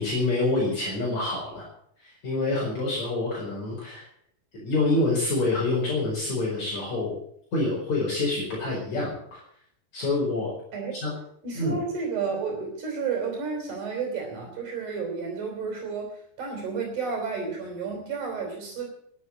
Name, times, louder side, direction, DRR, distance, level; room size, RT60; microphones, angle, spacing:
voice 1, 0.0-1.7 2.0-4.1 4.5-7.1 7.5-9.4 9.9-10.5 10.9-11.1 11.6-11.8, left 2 dB, 50° left, -5 dB, 6.0 m, -27 dB
voice 2, 11.4-18.9, right 5 dB, 60° right, 1 dB, 5.1 m, -31 dB
13.0 x 10.5 x 8.9 m, 0.67 s
omnidirectional pair, 4.1 m